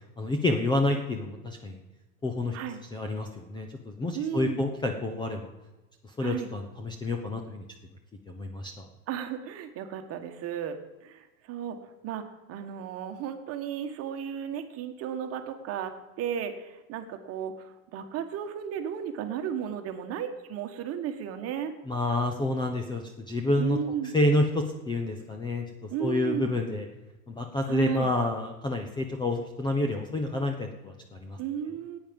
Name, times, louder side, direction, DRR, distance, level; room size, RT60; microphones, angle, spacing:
voice 1, 0.2-1.8 2.2-2.6 2.9-5.5 6.2-7.6 8.3-8.9 21.9-23.8 24.1-25.6 26.0-26.9 27.3-31.4, left 2 dB, 10° left, 4 dB, 0.7 m, -28 dB
voice 2, 4.1-4.6 6.2-6.5 9.1-11.8 12.0-12.2 12.5-15.9 16.2-21.7 23.6-24.1 25.9-26.5 27.7-28.1 31.4-32.0, right 9 dB, 30° right, 7 dB, 1.4 m, -34 dB
14.5 x 9.4 x 5.3 m, 1.1 s
supercardioid pair, 140°, 46 cm